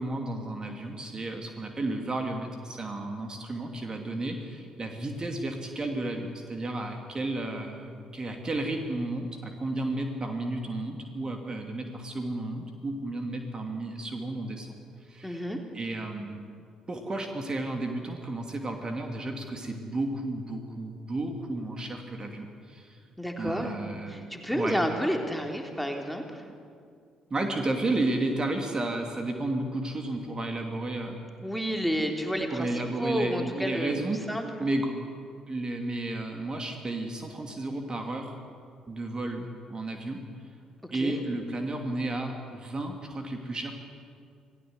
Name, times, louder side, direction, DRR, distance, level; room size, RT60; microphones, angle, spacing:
voice 1, 0.0-14.7 15.0-15.5 15.7-16.4 16.9-23.0 23.4-24.3 24.5-24.8 27.3-31.2 32.5-34.2 34.6-34.9 35.5-38.3 38.9-40.2 40.9-43.7, right 2 dB, 30° right, 4 dB, 2.8 m, -32 dB
voice 2, 15.2-15.6 23.2-23.7 24.1-26.4 31.4-33.9 34.3-34.5 40.8-41.2, equal, ahead, 3 dB, 3.3 m, -30 dB
27.5 x 16.5 x 8.1 m, 2.3 s
figure-of-eight pair, 45°, 3 cm